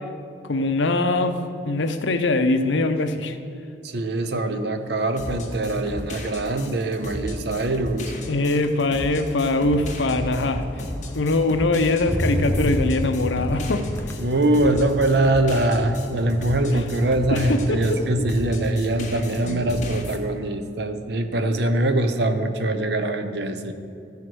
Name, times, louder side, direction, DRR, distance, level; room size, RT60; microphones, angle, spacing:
voice 1, 0.4-3.4 8.3-10.6 11.1-13.8 16.7-16.8 17.3-18.3 19.3-19.6, left 2 dB, 75° left, 8 dB, 0.7 m, -22 dB
voice 2, 3.8-8.1 14.2-23.7, right 1 dB, 60° right, 8 dB, 0.7 m, -23 dB
Motor vehicle (road), 4.8-5.2 5.5-19.9 20.3-20.8, equal, 10° left, 0.5 m, -33 dB
sound 1, 5.2-18.0 18.3-20.2, left 1 dB, 40° left, 1.1 m, -35 dB
14.0 x 4.7 x 6.1 m, 2.5 s
head